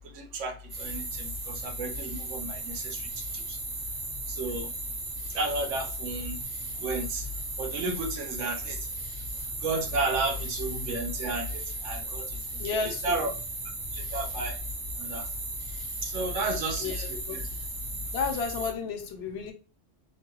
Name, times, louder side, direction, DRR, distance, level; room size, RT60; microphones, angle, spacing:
voice 1, 0.1-3.6 4.3-4.7 5.3-6.4 6.8-7.2 7.6-8.8 9.6-12.3 12.7-13.3 13.9-14.6 15.0-15.2 16.0-17.5, right 2 dB, 90° right, 4 dB, 1.0 m, -33 dB
sound 1, 0.7-18.7, right 1 dB, 60° right, 1.1 m, -36 dB
voice 2, 12.6-13.3 16.8-17.4 18.1-19.5, left 5 dB, 65° left, 5 dB, 0.8 m, -32 dB
3.0 x 2.3 x 2.8 m, 0.34 s
omnidirectional pair, 1.2 m